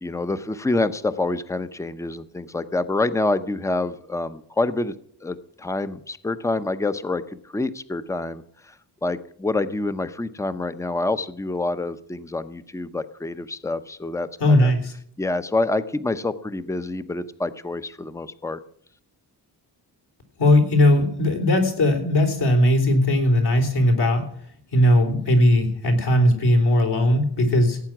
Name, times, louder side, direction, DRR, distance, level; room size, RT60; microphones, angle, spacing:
voice 1, 0.0-4.9 5.2-8.8 9.0-14.3 14.6-14.7 15.2-18.6, left 2 dB, 5° left, 12 dB, 0.6 m, -27 dB
voice 2, 14.4-14.9 20.4-24.3 24.7-27.8, left 1 dB, 70° left, 3 dB, 3.7 m, -18 dB
16.5 x 8.9 x 6.0 m, 0.63 s
wide cardioid pair, 135°, 41 cm